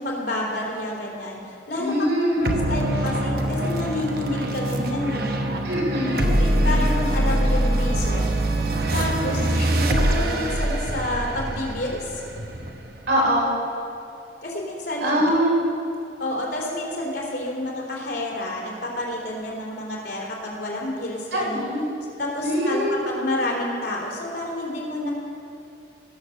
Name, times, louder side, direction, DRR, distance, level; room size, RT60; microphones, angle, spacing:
voice 1, 0.0-1.4 1.7-1.9 2.4-5.3 6.0-8.4 8.9-12.2 14.4-15.3 16.2-21.6 22.2-25.1, left 1 dB, 65° left, -3 dB, 3.4 m, -29 dB
voice 2, 1.8-2.4 5.6-6.3 6.6-6.9 9.2-9.6 13.1-13.5 15.0-15.6 21.3-21.8 22.4-23.0, equal, 85° right, -3 dB, 3.6 m, -23 dB
sound 1, 2.4-13.2, right 1 dB, 55° right, 1.0 m, -24 dB
17.5 x 7.2 x 6.6 m, 2.6 s
head